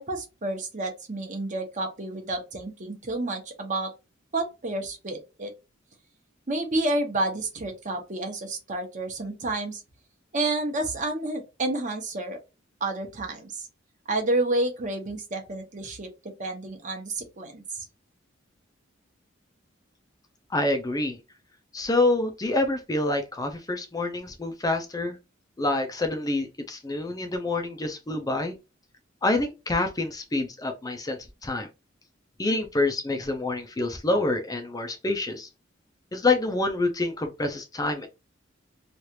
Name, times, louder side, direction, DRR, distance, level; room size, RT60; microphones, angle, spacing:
voice 1, 0.0-3.9 4.3-5.5 6.5-9.8 10.3-12.4 12.8-13.7 14.1-16.1 16.4-17.9, right 2 dB, 40° right, 0.9 m, -30 dB
voice 2, 20.5-21.2 21.7-25.2 25.6-28.6 29.2-31.7 32.4-35.5 36.1-38.1, left 2 dB, 20° left, 0.5 m, -27 dB
3.2 x 2.4 x 2.8 m
head